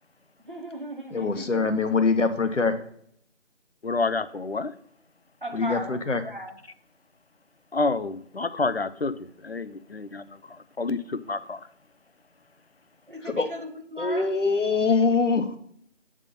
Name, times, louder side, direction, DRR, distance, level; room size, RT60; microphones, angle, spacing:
voice 1, 0.5-1.6 5.4-6.0 6.2-6.5 13.1-14.3, equal, 45° right, 1.0 m, -36 dB
voice 2, 1.1-2.8 5.5-6.2 13.2-13.5 14.0-15.6, left 4 dB, 90° left, 1.1 m, -23 dB
voice 3, 3.8-4.7 7.7-11.7, left 3 dB, 60° left, 0.5 m, -29 dB
8.4 x 3.6 x 5.5 m
figure-of-eight pair, 180°, 36 cm